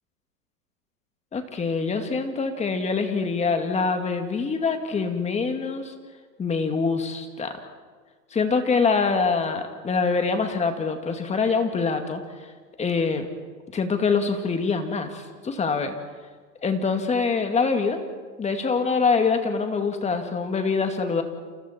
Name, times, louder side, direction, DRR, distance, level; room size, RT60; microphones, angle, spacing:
voice 1, 1.3-5.9 6.4-7.5 8.3-12.2 12.8-13.3 13.7-16.0 16.6-18.0 18.4-21.2, left 4 dB, 15° left, 6 dB, 2.2 m, -24 dB
29.5 x 28.5 x 4.5 m, 1.5 s
hypercardioid pair, 125°, 49 cm